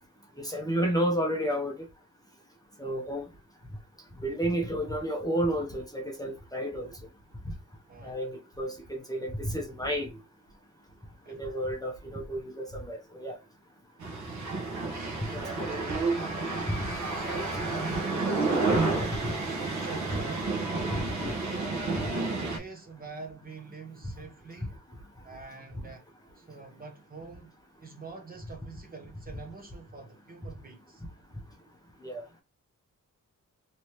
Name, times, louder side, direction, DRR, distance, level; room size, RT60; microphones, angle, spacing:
voice 1, 0.4-1.8 2.8-3.3 4.2-6.9 8.0-10.1 11.3-13.4 15.3-15.7 16.7-16.8 17.3-17.4 18.7-18.8 20.9-21.4 32.0-32.2, equal, 10° left, 0.7 m, -31 dB
voice 2, 7.9-8.2 11.2-11.5 15.5-16.1 17.1-17.8 18.1-20.5 21.5-24.7 25.2-26.0 26.4-27.5 27.8-31.0, right 4 dB, 30° right, 0.8 m, -45 dB
sound 1, 14.0-22.6, right 3 dB, 60° right, 1.0 m, -30 dB
3.3 x 3.1 x 2.8 m
wide cardioid pair, 170°, 32 cm